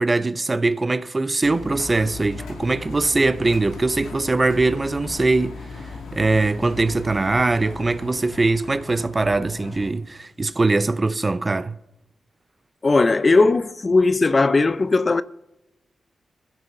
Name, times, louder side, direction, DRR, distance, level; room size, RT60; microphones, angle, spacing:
voice 1, 0.0-11.8, right 3 dB, 35° right, 0.6 m, -22 dB
Engine, 1.4-9.9, left 4 dB, 85° left, 2.3 m, -37 dB
voice 2, 12.8-15.2, left 3 dB, 40° left, 0.5 m, -18 dB
22.0 x 15.5 x 2.7 m
supercardioid pair, 45°, 0 cm